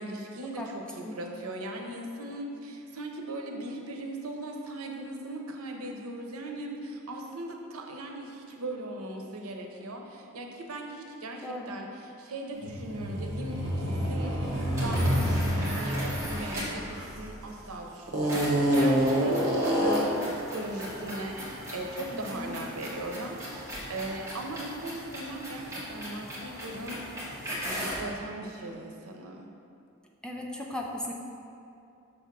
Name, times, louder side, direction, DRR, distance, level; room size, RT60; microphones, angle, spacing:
voice 1, 0.0-27.0 27.6-29.5, right 1 dB, 85° right, 2 dB, 0.8 m, -39 dB
sound 1, 12.6-17.5 18.1-20.3, equal, 55° right, 1.2 m, -27 dB
sound 2, 14.7-16.9 18.3-28.1, equal, 15° right, 1.6 m, -38 dB
voice 2, 22.1-22.5 30.2-31.1, left 1 dB, 5° left, -2 dB, 0.5 m, -37 dB
6.6 x 3.6 x 5.9 m, 2.6 s
head